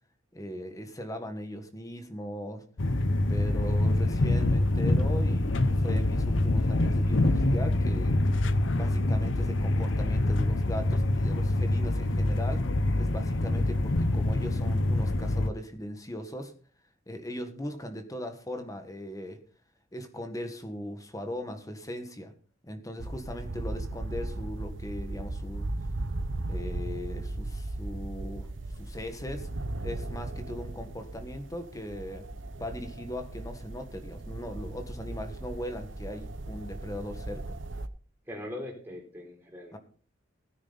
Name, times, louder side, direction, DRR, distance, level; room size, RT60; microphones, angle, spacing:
voice 1, 0.3-2.6 3.3-8.2 8.7-12.6 13.0-16.5 17.1-19.4 19.9-22.3 22.6-25.7 26.5-28.5 28.8-29.5 29.8-32.2 32.6-37.6 39.7-39.8, equal, 15° left, 7 dB, 1.6 m, -39 dB
sound 1, 2.8-15.5, left 1 dB, 65° left, 0.8 m, -25 dB
sound 2, 23.0-37.9, right 2 dB, 70° right, 0.9 m, -37 dB
voice 2, 38.3-39.8, left 1 dB, 10° right, 0 dB, 3.7 m, -40 dB
16.5 x 9.5 x 4.1 m, 0.41 s
head